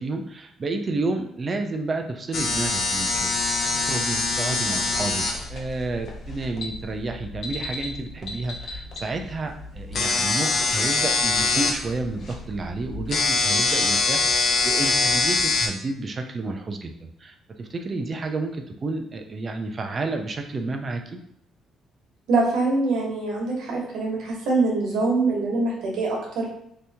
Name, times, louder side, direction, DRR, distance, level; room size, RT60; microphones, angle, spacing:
voice 1, 0.0-5.2 5.5-21.2, right 3 dB, 30° right, 4 dB, 0.4 m, -31 dB
sound 1, 2.3-15.7, left 3 dB, 50° left, 0.6 m, -25 dB
voice 2, 22.3-26.5, right 3 dB, 80° right, -2 dB, 1.1 m, -24 dB
2.8 x 2.7 x 3.4 m, 0.73 s
cardioid pair, 135°, 0 cm